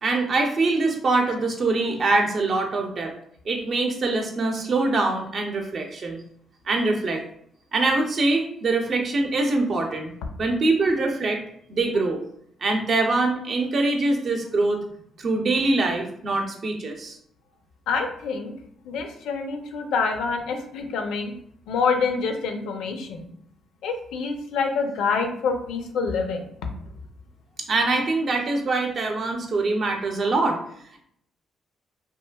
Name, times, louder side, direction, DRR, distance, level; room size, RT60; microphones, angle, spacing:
voice 1, 0.0-3.1 3.4-6.2 6.7-7.2 7.7-10.1 10.4-11.4 11.7-12.2 12.6-14.8 15.2-17.2 27.7-30.6, right 3 dB, 50° right, 3 dB, 0.6 m, -23 dB
voice 2, 17.9-18.5 18.8-21.3 21.7-23.2 23.8-26.4, left 5 dB, 85° left, 5 dB, 0.5 m, -26 dB
3.0 x 2.5 x 2.2 m, 0.67 s
cardioid pair, 90°, 0 cm